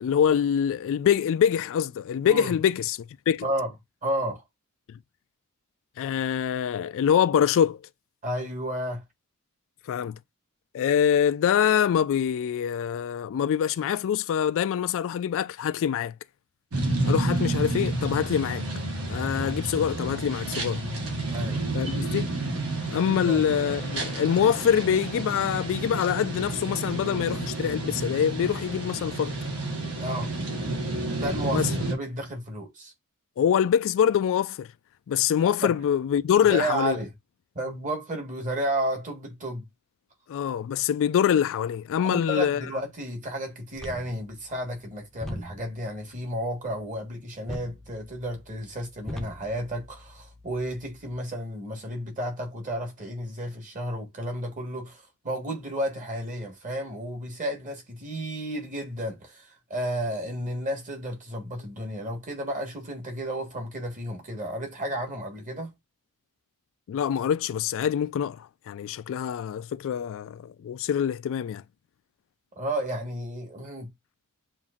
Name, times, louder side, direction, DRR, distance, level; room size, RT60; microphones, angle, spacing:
voice 1, 0.0-3.0 3.3-3.4 4.9-5.0 6.0-7.8 9.9-10.2 10.7-16.1 17.0-18.6 19.1-20.8 21.7-22.3 22.9-29.3 31.5-31.7 33.4-34.7 35.1-37.0 40.3-42.6 66.9-71.6, left 8 dB, 60° left, 0.3 m, -25 dB
voice 2, 3.4-3.7 4.0-4.4 8.2-9.0 21.3-21.6 23.1-23.4 30.0-30.3 31.1-32.9 35.6-35.7 36.4-37.1 37.5-39.7 42.0-65.7 72.5-73.9, right 1 dB, 35° right, 1.4 m, -32 dB
sound 1, 16.7-31.9, right 2 dB, 70° right, 1.3 m, -30 dB
sound 2, 43.7-51.2, equal, ahead, 0.6 m, -43 dB
7.1 x 2.6 x 2.4 m
head